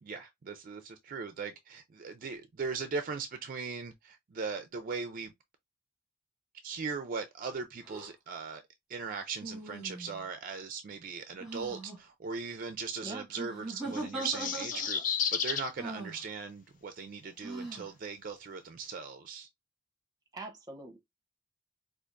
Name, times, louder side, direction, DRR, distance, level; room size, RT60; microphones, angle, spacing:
voice 1, 0.0-5.3 6.6-8.6 8.9-15.0 15.3-19.5, right 5 dB, 45° right, 0.4 m, -39 dB
sound 1, 7.8-8.1 9.4-10.3 11.4-12.0 13.3-15.1 15.8-16.2 17.4-17.9, right 2 dB, ahead, 1.7 m, -40 dB
sound 2, 13.9-15.7, left 7 dB, 45° left, 0.5 m, -32 dB
voice 2, 20.3-21.0, right 2 dB, 20° right, 0.8 m, -43 dB
4.5 x 2.4 x 2.5 m
head